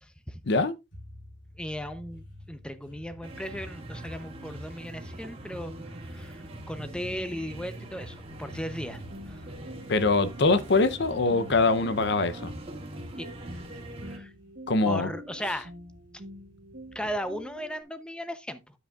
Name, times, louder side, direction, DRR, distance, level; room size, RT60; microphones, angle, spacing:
voice 1, 0.0-0.4 1.6-5.7 6.0-9.5 13.2-13.3 14.0-14.3 14.8-15.7 16.9-18.6, equal, 5° left, 0.7 m, -37 dB
sound 1, 0.9-17.7, left 1 dB, 90° left, 3.4 m, -52 dB
sound 2, 3.2-14.2, right 1 dB, 30° right, 1.9 m, -42 dB
sound 3, 9.1-17.8, right 1 dB, 55° right, 1.2 m, -47 dB
voice 2, 9.9-12.5 14.7-15.1, left 3 dB, 65° left, 0.7 m, -23 dB
9.6 x 7.9 x 2.4 m
head